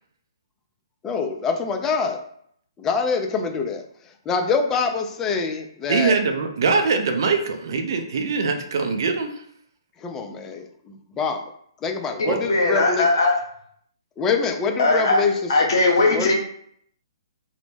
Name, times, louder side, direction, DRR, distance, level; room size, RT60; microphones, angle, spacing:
voice 1, 1.0-2.2 2.8-3.8 4.3-6.2 10.0-11.4 11.8-13.1 14.2-15.5 16.0-16.3, left 5 dB, 15° left, 4 dB, 0.3 m, -25 dB
voice 2, 5.9-9.4 12.2-12.4, right 4 dB, 55° right, 5 dB, 0.4 m, -22 dB
voice 3, 12.5-13.4 14.8-15.2 15.5-16.3, left 2 dB, 60° left, 1 dB, 0.7 m, -19 dB
2.0 x 2.0 x 3.1 m, 0.66 s
figure-of-eight pair, 130°, 3 cm